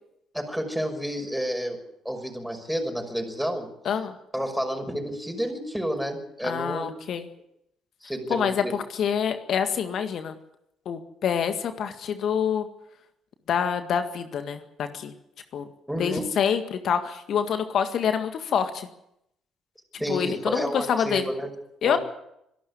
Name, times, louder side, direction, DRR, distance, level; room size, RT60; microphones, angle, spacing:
voice 1, 0.3-3.7 4.3-6.9 8.0-8.7 15.9-16.3 20.0-21.5 21.8-22.0, equal, ahead, 3 dB, 6.0 m, -30 dB
voice 2, 6.4-7.3 8.3-10.4 10.9-12.7 13.5-15.1 15.5-15.7 16.0-18.9 20.1-21.3 21.8-22.0, left 7 dB, 60° left, 8 dB, 1.9 m, -26 dB
24.5 x 12.5 x 9.8 m, 0.80 s
hypercardioid pair, 50°, 0 cm